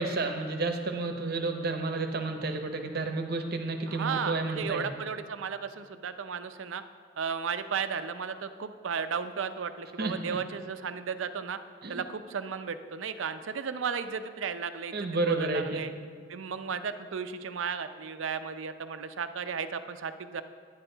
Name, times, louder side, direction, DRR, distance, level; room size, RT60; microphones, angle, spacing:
voice 1, 0.0-4.9 10.0-10.4 11.8-12.0 14.9-15.8, right 3 dB, 55° right, 5 dB, 0.8 m, -31 dB
voice 2, 3.9-6.8 7.2-11.6 11.9-15.9 16.3-20.4, right 6 dB, 80° right, 10 dB, 0.5 m, -34 dB
10.0 x 9.7 x 3.9 m, 2.1 s
head